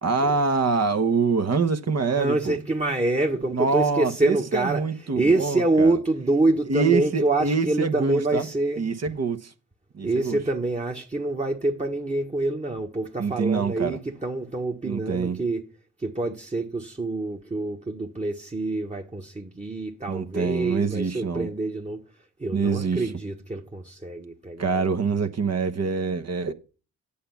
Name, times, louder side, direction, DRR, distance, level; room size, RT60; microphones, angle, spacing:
voice 1, 0.0-2.6 3.5-6.0 6.7-8.5 8.8-9.5 9.9-10.4 13.2-14.0 14.8-15.4 20.1-21.5 22.5-23.1 24.6-26.5, right 4 dB, 45° right, 1.2 m, -25 dB
voice 2, 2.1-4.9 5.1-8.8 10.0-15.7 16.0-22.0 22.4-24.9, right 2 dB, 20° right, 1.4 m, -26 dB
8.6 x 7.0 x 5.7 m
hypercardioid pair, 45°, 36 cm